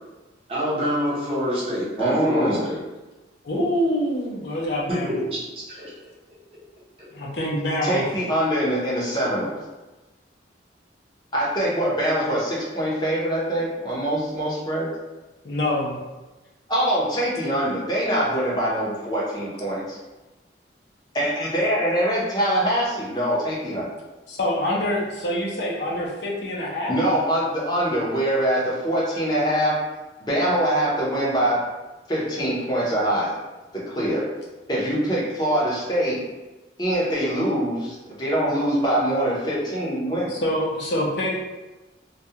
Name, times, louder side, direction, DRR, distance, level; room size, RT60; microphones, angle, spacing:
voice 1, 0.5-2.8 4.9-5.9, equal, 30° right, -7 dB, 0.7 m, -26 dB
voice 2, 2.0-2.6 7.8-9.5 11.3-14.9 16.7-20.0 21.1-23.9 26.9-29.8 30.2-31.6 32.1-33.4 33.7-34.2 34.7-36.2 36.8-40.3, right 1 dB, 25° left, -6 dB, 0.6 m, -23 dB
voice 3, 3.4-5.1 7.1-8.0 15.4-15.9 24.3-27.0 40.3-41.4, left 1 dB, 65° left, -4 dB, 0.6 m, -25 dB
2.3 x 2.2 x 2.7 m, 1.1 s
head